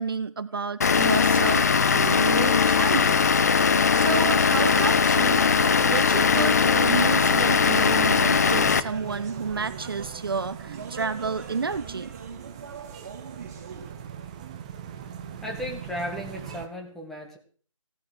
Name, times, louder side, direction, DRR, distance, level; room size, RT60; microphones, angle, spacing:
voice 1, 0.0-3.4 3.9-5.4 5.8-12.1, right 5 dB, 45° right, 13 dB, 0.9 m, -30 dB
Vehicle / Engine, 0.8-8.8, left 6 dB, 30° left, 0.8 m, -20 dB
sound 1, 4.0-14.5, right 6 dB, 30° right, 2.3 m, -42 dB
sound 2, 6.2-16.7, right 8 dB, 15° right, 0.8 m, -40 dB
voice 2, 15.4-17.4, left 1 dB, ahead, 1 dB, 1.4 m, -35 dB
17.0 x 11.0 x 6.6 m, 0.43 s
figure-of-eight pair, 155°, 17 cm